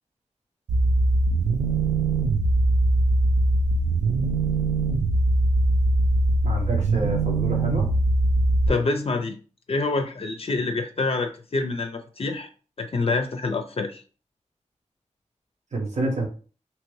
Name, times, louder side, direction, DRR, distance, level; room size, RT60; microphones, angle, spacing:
sound 1, 0.7-8.7, right 2 dB, 85° right, 0.4 m, -21 dB
voice 1, 6.4-7.9 15.7-16.3, right 2 dB, 70° right, 0 dB, 1.0 m, -27 dB
voice 2, 8.7-9.4 9.7-12.5 12.8-14.0, left 3 dB, 50° left, 6 dB, 0.4 m, -26 dB
2.8 x 2.5 x 3.1 m, 0.37 s
cardioid pair, 50°, 13 cm